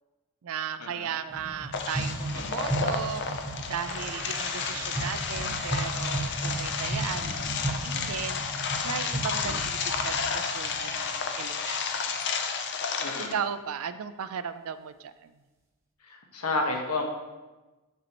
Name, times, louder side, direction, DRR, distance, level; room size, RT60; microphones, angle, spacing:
voice 1, 0.4-3.2 3.7-7.4 7.7-8.4 8.8-9.8 10.0-11.9 13.2-15.3, right 7 dB, 65° right, 12 dB, 0.4 m, -36 dB
sound 1, 1.3-11.7, right 2 dB, 10° right, 0.8 m, -35 dB
sound 2, 1.7-13.3, left 5 dB, 50° left, 0.5 m, -32 dB
voice 2, 13.0-13.3 16.1-17.1, left 2 dB, 80° left, 1 dB, 1.1 m, -30 dB
6.7 x 6.3 x 2.9 m, 1.1 s
head